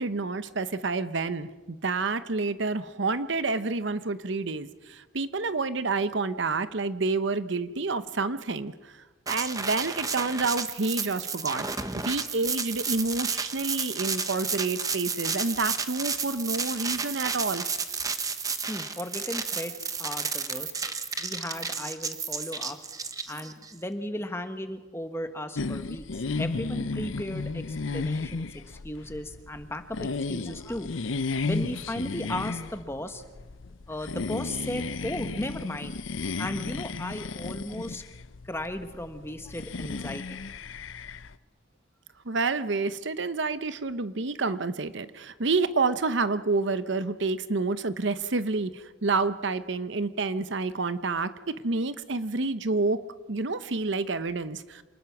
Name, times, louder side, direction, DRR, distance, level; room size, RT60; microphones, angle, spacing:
voice 1, 0.0-9.0 9.3-11.6 11.9-17.6 42.2-53.0 53.3-54.8, right 3 dB, 65° right, 13 dB, 0.8 m, -29 dB
sound 1, 9.3-23.7, right 5 dB, 15° right, 1.0 m, -32 dB
voice 2, 18.7-20.7 21.2-22.8 23.3-30.9 31.5-33.2 33.9-36.0 36.4-38.0 38.4-40.4, left 1 dB, 10° left, 8 dB, 1.3 m, -36 dB
sound 2, 25.5-41.3, left 3 dB, 75° left, 0.7 m, -34 dB
27.5 x 20.0 x 6.0 m, 1.2 s
head